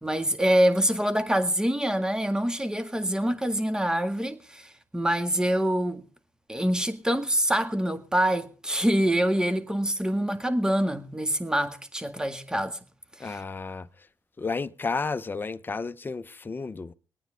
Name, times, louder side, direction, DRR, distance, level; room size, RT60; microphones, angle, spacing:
voice 1, 0.0-6.0 6.5-12.8 13.2-13.4, right 1 dB, 10° right, 1.8 m, -25 dB
voice 2, 13.2-14.1 14.4-16.9, left 4 dB, 30° left, 0.8 m, -32 dB
23.0 x 9.4 x 3.8 m
supercardioid pair, 65°, 7 cm